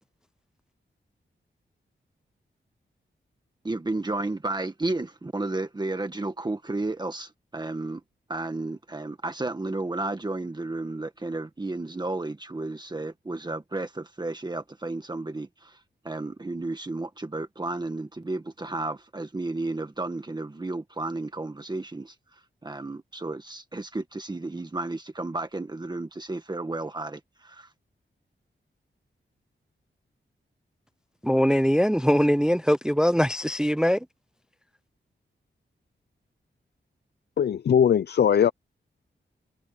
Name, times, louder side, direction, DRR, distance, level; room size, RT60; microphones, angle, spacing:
voice 1, 3.6-8.0 8.3-15.8 16.0-22.1 22.6-27.7, right 2 dB, 20° right, 1.6 m, -32 dB
voice 2, 31.2-34.1, equal, 5° right, 0.4 m, -22 dB
voice 3, 37.4-38.5, left 8 dB, 60° left, 0.4 m, -20 dB
wide cardioid pair, 160°, 20 cm